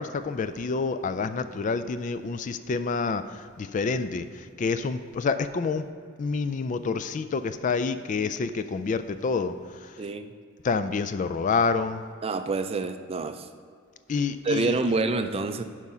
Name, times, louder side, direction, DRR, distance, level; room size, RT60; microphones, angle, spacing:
voice 1, 0.0-5.8 6.2-10.0 10.6-12.0 14.1-14.8, left 4 dB, 40° left, 12 dB, 0.3 m, -28 dB
voice 2, 12.2-13.5 14.4-15.6, right 3 dB, 30° right, 9 dB, 0.4 m, -27 dB
11.0 x 4.8 x 5.5 m, 2.2 s
head